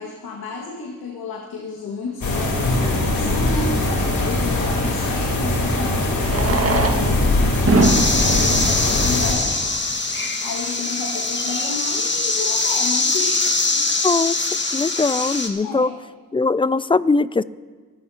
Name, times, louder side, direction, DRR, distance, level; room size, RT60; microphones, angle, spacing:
voice 1, 0.0-3.8 4.2-9.5 10.4-13.8 15.6-16.0, left 4 dB, 90° left, -2 dB, 2.0 m, -32 dB
sound 1, 2.2-9.3, left 1 dB, 65° left, 3.8 m, -21 dB
Fireworks, 2.7-2.8 5.0-5.1 6.2-9.9 10.7-10.8 11.0-11.1 11.3-11.4 11.9-12.1, right 2 dB, 40° right, 1.8 m, -23 dB
sound 2, 7.8-15.5, left 3 dB, 30° left, 1.8 m, -22 dB
voice 2, 14.0-14.4 14.7-15.9 16.3-17.4, left 3 dB, 15° left, 18 dB, 0.3 m, -20 dB
23.5 x 14.0 x 2.9 m, 1.4 s
cardioid pair, 70°, 36 cm